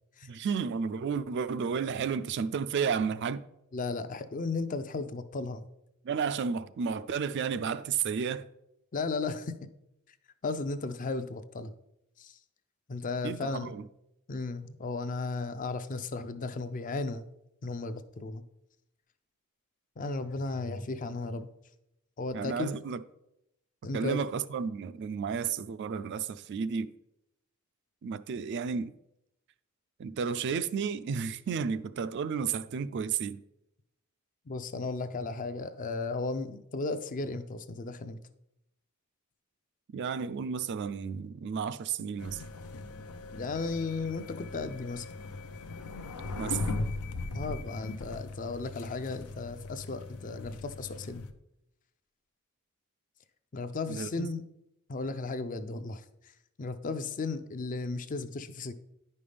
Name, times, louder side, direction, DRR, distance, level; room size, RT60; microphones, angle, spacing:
voice 1, 0.2-3.4 6.0-8.5 13.2-13.8 22.3-23.0 23.9-26.9 28.0-28.9 30.0-33.4 39.9-42.4 46.4-46.6 53.9-54.3, right 6 dB, 50° right, 0.3 m, -32 dB
voice 2, 3.7-5.6 8.9-9.7 10.4-11.7 12.2-12.4 12.9-13.7 14.3-17.2 17.6-18.4 20.0-21.5 22.2-22.7 23.8-24.2 34.5-38.2 43.3-45.1 47.3-51.2 53.5-54.4 54.9-56.0 56.6-58.7, left 3 dB, 35° left, 0.4 m, -35 dB
sound 1, 42.2-51.3, left 2 dB, 90° left, 0.6 m, -39 dB
10.0 x 5.4 x 3.4 m
head